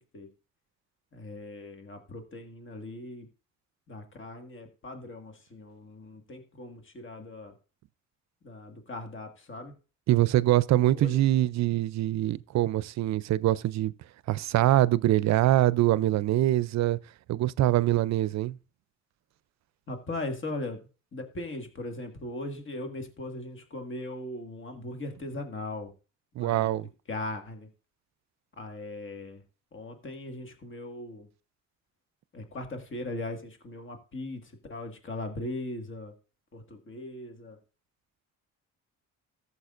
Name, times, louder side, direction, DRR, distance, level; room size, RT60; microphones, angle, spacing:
voice 1, 1.1-3.3 3.9-7.5 8.4-9.7 10.9-11.1 19.9-20.8 21.1-25.9 26.4-26.8 27.1-27.7 28.6-29.4 29.7-31.3 32.3-36.1 36.5-37.6, left 2 dB, 40° left, 1.8 m, -39 dB
voice 2, 10.1-13.9 14.3-17.0 17.3-18.6 26.4-26.9, right 14 dB, 65° right, 0.5 m, -24 dB
14.5 x 7.0 x 2.5 m
cardioid pair, 90°, 30 cm